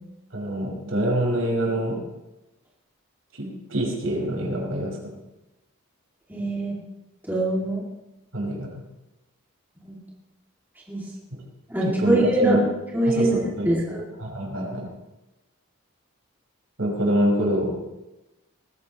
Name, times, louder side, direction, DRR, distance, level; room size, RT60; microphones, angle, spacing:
voice 1, 0.3-2.0 3.4-5.0 8.3-8.7 12.0-12.6 13.1-13.7 14.2-14.9 16.8-17.7, right 1 dB, 70° right, -2 dB, 5.6 m, -25 dB
voice 2, 6.3-6.7 7.3-7.8 9.8-10.0 10.9-11.0 11.7-12.6 12.9-13.4 13.7-14.0, right 1 dB, 10° right, -5 dB, 2.5 m, -23 dB
20.5 x 15.5 x 3.1 m, 0.98 s
head